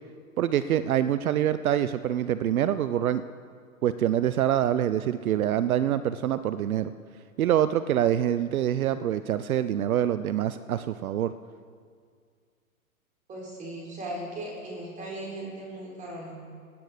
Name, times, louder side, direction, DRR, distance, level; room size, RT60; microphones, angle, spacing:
voice 1, 0.4-3.2 3.8-6.9 7.4-11.3, right 11 dB, 75° right, 14 dB, 0.6 m, -25 dB
voice 2, 13.3-16.3, right 1 dB, 15° right, -2 dB, 4.1 m, -37 dB
16.0 x 9.7 x 5.0 m, 2.1 s
hypercardioid pair, 130°, 43 cm